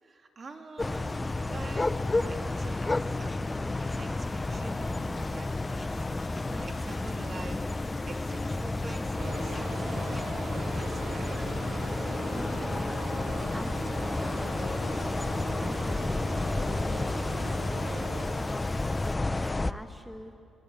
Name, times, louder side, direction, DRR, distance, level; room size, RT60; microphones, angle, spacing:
voice 1, 0.0-1.9 2.2-3.5 3.9-6.0 6.5-9.6 9.9-11.4, right 3 dB, 40° right, 3 dB, 2.8 m, -46 dB
sound 1, 0.8-19.2, left 5 dB, 40° left, 2.6 m, -54 dB
sound 2, 0.8-19.7, left 2 dB, 15° left, 0.6 m, -31 dB
sound 3, 9.2-18.3, right 4 dB, 75° right, 3.0 m, -40 dB
voice 2, 12.3-13.0 13.5-16.1 16.5-17.3 18.3-18.8 19.0-20.3, equal, ahead, 5 dB, 1.0 m, -44 dB
25.0 x 23.5 x 8.6 m, 2.7 s
cardioid pair, 120°, 0 cm